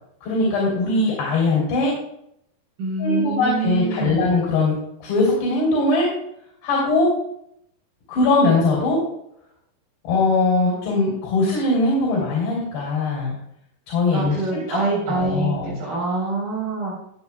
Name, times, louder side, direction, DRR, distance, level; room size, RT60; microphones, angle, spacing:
voice 1, 0.2-1.9 3.0-6.1 6.6-7.2 8.1-9.0 10.0-13.4 13.9-14.4 14.7-15.8, left 3 dB, 90° left, -3 dB, 5.2 m, -21 dB
voice 2, 2.8-4.2 14.1-17.0, right 3 dB, 65° right, -8 dB, 5.8 m, -25 dB
21.5 x 7.6 x 2.3 m, 0.74 s
omnidirectional pair, 4.6 m